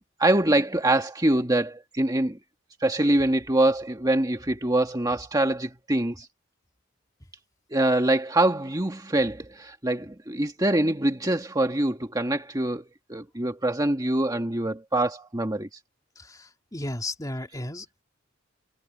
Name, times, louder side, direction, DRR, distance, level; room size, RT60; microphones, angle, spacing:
voice 1, 0.0-2.4 2.8-6.3 7.7-12.8 13.1-15.7, right 1 dB, 20° right, 1.6 m, -24 dB
voice 2, 16.7-18.0, left 1 dB, 20° left, 2.9 m, -33 dB
head